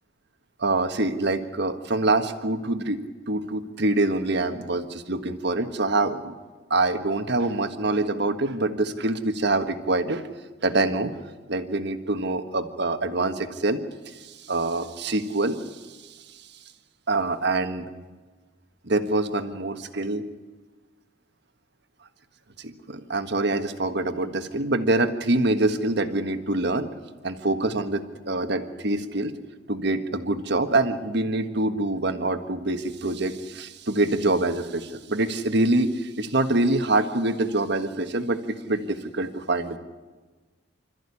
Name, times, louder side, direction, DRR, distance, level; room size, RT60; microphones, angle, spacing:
voice 1, 0.6-6.3 6.7-10.2 10.6-11.1 11.5-16.5 17.1-17.9 18.8-20.2 22.6-26.9 27.2-29.3 29.7-39.8, right 2 dB, 55° right, 8 dB, 1.5 m, -25 dB
26.5 x 14.0 x 9.9 m, 1.3 s
head